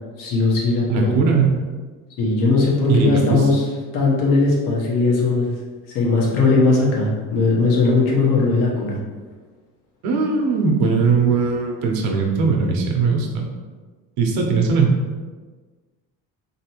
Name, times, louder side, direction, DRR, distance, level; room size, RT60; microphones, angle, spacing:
voice 1, 0.2-1.1 2.2-3.7 3.9-5.5 5.9-9.0, left 3 dB, 65° left, -2 dB, 1.1 m, -18 dB
voice 2, 0.9-1.6 2.9-3.4 10.0-13.5 14.2-15.0, right 5 dB, 80° right, 1 dB, 0.9 m, -19 dB
4.2 x 3.0 x 3.0 m, 1.4 s
cardioid pair, 165°, 35 cm